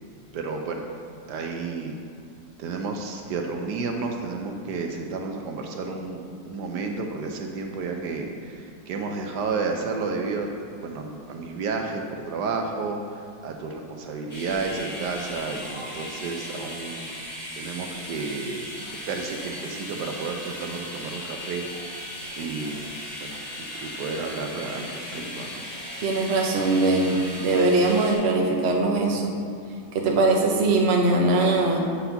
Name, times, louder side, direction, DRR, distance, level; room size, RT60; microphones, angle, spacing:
voice 1, 0.3-0.8 1.3-2.0 2.6-17.1 17.6-18.7 19.1-22.0 22.4-22.9 23.2-25.7, right 4 dB, 70° right, 3 dB, 1.1 m, -31 dB
sound 1, 14.3-28.1, left 1 dB, 20° left, 1.5 m, -37 dB
voice 2, 26.0-29.3 29.9-31.8, right 2 dB, 45° right, 0 dB, 0.9 m, -21 dB
8.2 x 4.0 x 5.6 m, 2.3 s
omnidirectional pair, 2.0 m